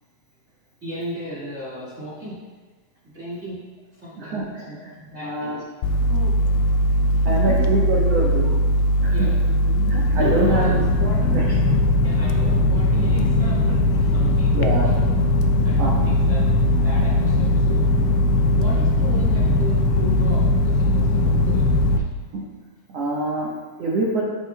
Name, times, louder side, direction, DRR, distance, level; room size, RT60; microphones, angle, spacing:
voice 1, 0.8-2.4 3.0-3.6 4.0-5.6 6.1-6.3 7.2-8.1 9.1-9.3 9.9-11.3 12.0-15.0 15.6-16.5 16.8-17.8 18.5-21.7, equal, 35° right, -8 dB, 1.1 m, -35 dB
voice 2, 4.2-4.9 5.2-5.6 7.2-8.6 9.0-9.3 9.9-10.9 11.3-11.4 14.5-14.9 15.8-16.1 22.3-22.5 22.9-24.2, right 2 dB, 80° right, -5 dB, 1.4 m, -25 dB
sound 1, 5.8-22.0, left 1 dB, 90° left, 1.9 m, -19 dB
15.0 x 5.1 x 2.2 m, 1.4 s
omnidirectional pair, 4.4 m